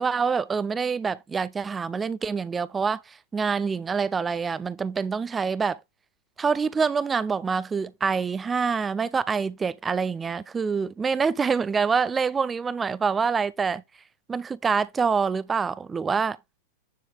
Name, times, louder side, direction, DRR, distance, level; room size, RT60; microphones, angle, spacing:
voice 1, 0.0-5.8 6.4-13.8 14.3-16.4, right 5 dB, 15° right, 0.5 m, -26 dB
10.5 x 4.2 x 4.7 m
figure-of-eight pair, 90°, 0 cm